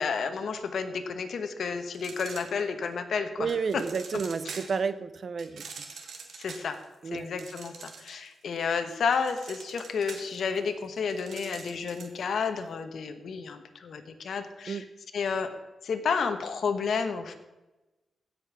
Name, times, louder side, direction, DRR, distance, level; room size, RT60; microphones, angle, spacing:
voice 1, 0.0-3.5 6.4-6.8 7.1-14.8 15.1-15.5 15.8-17.3, left 5 dB, 75° left, 8 dB, 1.1 m, -31 dB
sound 1, 1.9-3.0 3.5-4.8 5.4-8.3 8.6-12.2, right 5 dB, 80° right, 1.7 m, -44 dB
voice 2, 3.4-5.6 7.0-7.3 14.7-14.8, right 5 dB, 55° right, 14 dB, 0.7 m, -31 dB
16.0 x 5.3 x 6.1 m, 1.1 s
cardioid pair, 95°, 0 cm